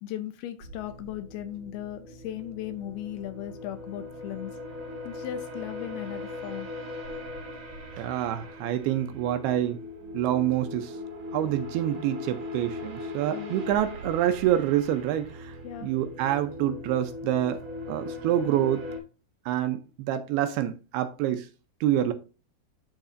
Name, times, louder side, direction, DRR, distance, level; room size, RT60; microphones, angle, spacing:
voice 1, 0.0-4.6 5.1-6.7 13.3-13.6 15.6-15.9, left 12 dB, 80° left, 2.3 m, -37 dB
sound 1, 0.6-19.0, left 2 dB, 50° right, 1.7 m, -40 dB
voice 2, 8.0-9.8 10.1-11.0 11.3-17.6 17.9-18.8 19.5-21.5 21.8-22.1, right 12 dB, 80° right, 2.4 m, -27 dB
11.5 x 4.1 x 2.5 m
omnidirectional pair, 4.8 m